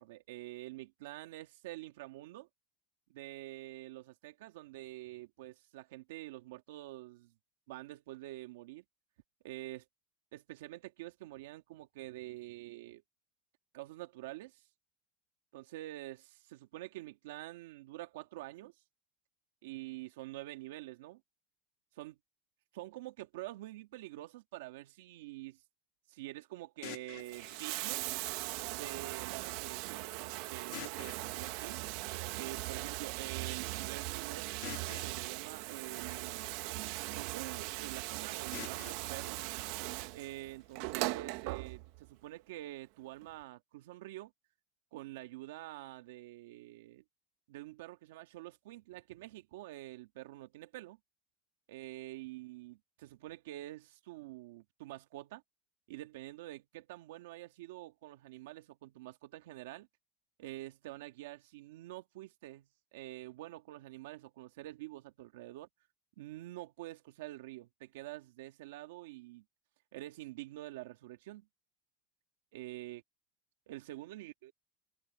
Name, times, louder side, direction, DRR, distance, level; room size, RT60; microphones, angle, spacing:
voice 1, 0.0-2.5 3.1-7.3 7.7-8.8 9.4-9.9 10.3-13.0 13.7-14.7 15.5-18.7 19.6-21.2 21.9-22.2 22.7-25.6 26.1-28.0 28.7-30.1 30.5-31.8 32.3-34.6 35.0-36.5 37.1-39.4 40.1-44.3 44.9-47.0 47.5-51.0 51.7-55.4 55.9-59.9 60.4-65.7 66.2-69.4 69.9-71.5 72.5-73.0 73.7-74.5, right 17 dB, 85° right, 2.0 m, -47 dB
sound 1, 26.8-28.8 30.7-32.7 34.6-36.8 38.5-40.6, left 23 dB, 70° left, 1.9 m, -51 dB
Bathtub (filling or washing), 27.1-42.1 43.2-43.3, right 21 dB, 70° right, 1.5 m, -39 dB
supercardioid pair, 120°, 0 cm